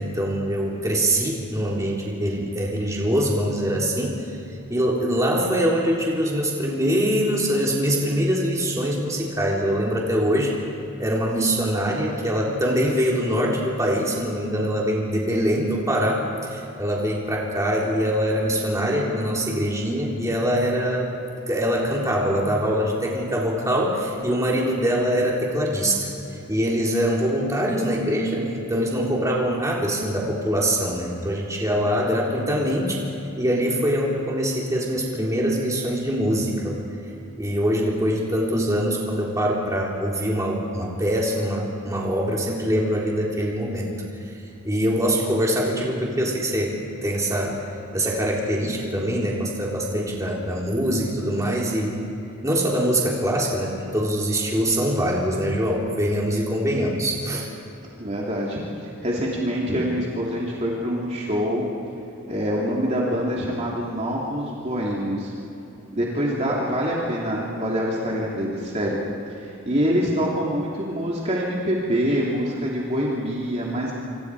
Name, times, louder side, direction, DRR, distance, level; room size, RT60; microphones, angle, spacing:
voice 1, 0.0-4.2 4.7-10.5 11.0-16.2 16.5-21.1 21.5-26.1 26.5-33.0 33.4-36.8 37.4-43.9 44.6-46.7 47.0-47.6 47.9-52.0 52.4-57.5, equal, 15° right, -3 dB, 3.6 m, -23 dB
voice 2, 58.0-61.7 62.3-65.3 65.9-69.0 69.3-73.9, equal, 30° right, -4 dB, 3.0 m, -25 dB
27.0 x 26.0 x 4.9 m, 3.0 s
head